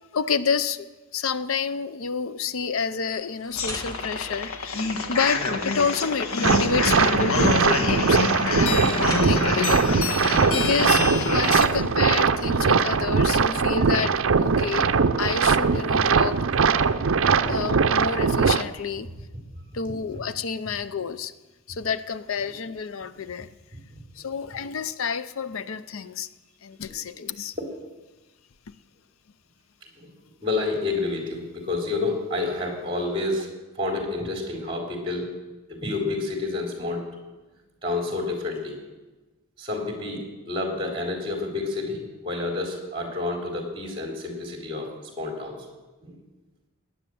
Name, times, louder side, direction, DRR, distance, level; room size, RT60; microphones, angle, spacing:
voice 1, 0.1-0.9 1.1-14.9 15.2-16.5 17.5-19.1 19.7-21.3 21.7-23.5 24.2-26.3 26.6-27.6, left 6 dB, 75° left, 14 dB, 0.6 m, -29 dB
sound 1, 2.9-5.3 7.8-7.9 8.3-9.5, left 1 dB, 15° left, 1.2 m, -40 dB
sound 2, 3.5-11.7, left 4 dB, 90° left, 1.5 m, -26 dB
sound 3, 6.4-18.6, right 5 dB, 70° right, 0.6 m, -21 dB
voice 2, 30.4-33.5 33.8-35.3 35.7-37.1 37.8-38.7 39.6-45.6 46.0-46.1, left 3 dB, 25° right, 1 dB, 3.7 m, -29 dB
17.0 x 10.5 x 7.7 m, 1.2 s
head